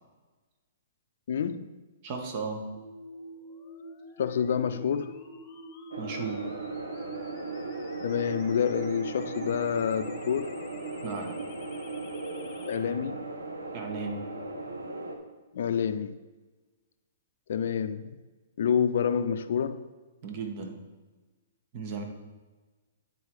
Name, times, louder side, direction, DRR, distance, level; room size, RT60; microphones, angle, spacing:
voice 1, 1.3-1.7 4.2-5.1 8.0-10.5 12.7-13.2 15.5-16.2 17.5-18.1 18.6-19.8, left 7 dB, 65° left, 11 dB, 0.5 m, -28 dB
voice 2, 2.0-2.7 6.0-6.5 11.0-11.4 13.7-14.2 20.2-20.8 21.7-22.0, right 4 dB, 45° right, 3 dB, 1.4 m, -35 dB
sound 1, 2.8-12.8, equal, 30° left, 1.0 m, -47 dB
sound 2, 5.9-15.2, right 3 dB, 85° right, 1.1 m, -37 dB
9.8 x 4.5 x 4.8 m, 1.3 s
hypercardioid pair, 125°, 0 cm